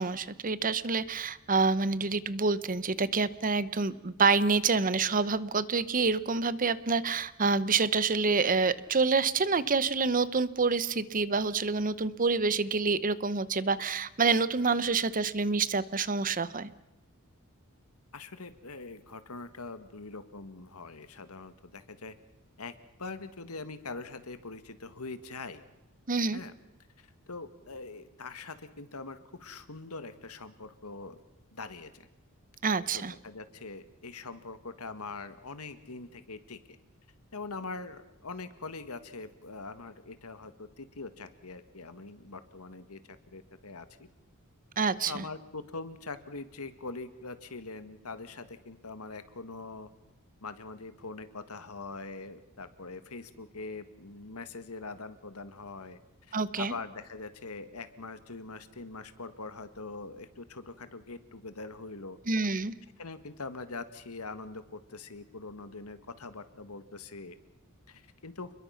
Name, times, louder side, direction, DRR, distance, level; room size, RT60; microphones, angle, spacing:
voice 1, 0.0-16.7 26.1-26.4 32.6-33.1 44.8-45.2 56.3-56.7 62.3-62.7, right 4 dB, 40° right, 16 dB, 0.9 m, -27 dB
voice 2, 18.1-22.1 22.6-25.6 26.3-26.5 27.0-31.2 31.5-32.1 32.9-36.6 37.3-43.0 43.3-44.1 45.1-49.9 50.4-62.2 63.0-67.4 67.9-68.5, left 3 dB, 90° left, 11 dB, 1.8 m, -43 dB
29.5 x 21.5 x 5.8 m, 0.97 s
head